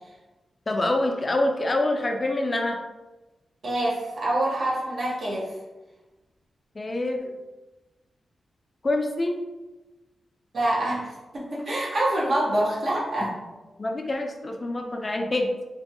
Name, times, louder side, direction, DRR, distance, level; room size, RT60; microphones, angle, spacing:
voice 1, 0.7-2.8 6.7-7.3 8.8-9.4 13.2-13.3 13.8-15.5, left 2 dB, 40° left, 3 dB, 0.4 m, -26 dB
voice 2, 3.6-5.5 10.5-13.3, right 1 dB, 65° right, -4 dB, 0.8 m, -26 dB
2.5 x 2.3 x 2.7 m, 1.1 s
cardioid pair, 55°, 0 cm